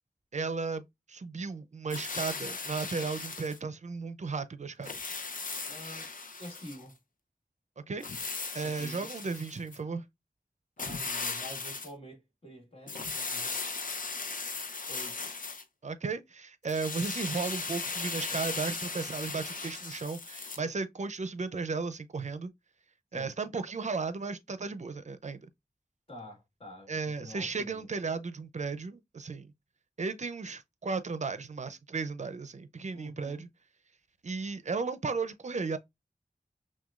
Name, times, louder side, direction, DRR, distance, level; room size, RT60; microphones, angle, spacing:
voice 1, 0.3-4.9 7.9-8.1 8.5-10.0 15.8-22.5 23.1-25.5 26.9-29.5 30.0-33.5 34.2-35.8, right 4 dB, 50° right, 0.5 m, -35 dB
sound 1, 1.9-3.6 4.8-6.8 8.0-9.8 10.8-11.9 12.9-15.6 16.7-20.6, left 4 dB, 60° left, 0.6 m, -37 dB
voice 2, 5.7-6.1 6.4-7.0 8.6-9.1 10.8-13.6 14.9-15.3 23.1-23.3 26.1-27.9 32.9-33.5, equal, 40° left, 1.6 m, -47 dB
5.9 x 2.2 x 2.3 m
wide cardioid pair, 70°, 15 cm